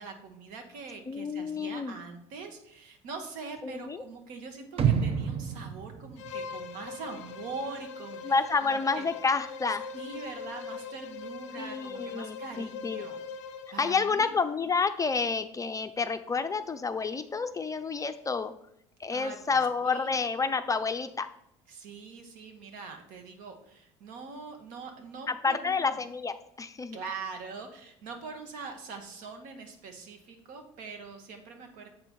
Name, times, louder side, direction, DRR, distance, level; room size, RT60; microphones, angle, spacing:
voice 1, 0.0-8.3 8.6-9.1 9.9-13.2 13.7-14.3 19.1-20.2 21.7-26.0 26.9-31.9, right 4 dB, 60° right, 4 dB, 1.3 m, -43 dB
voice 2, 1.1-1.9 3.6-4.0 8.2-9.9 11.6-13.1 13.8-18.5 19.0-21.3 25.3-27.0, left 4 dB, 20° left, 9 dB, 0.5 m, -29 dB
sound 1, 4.8-6.9 7.3-7.4, right 7 dB, 40° right, 0.7 m, -29 dB
Bowed string instrument, 6.2-13.8, left 5 dB, 75° left, 0.5 m, -41 dB
7.4 x 4.5 x 4.3 m, 0.73 s
hypercardioid pair, 65°, 15 cm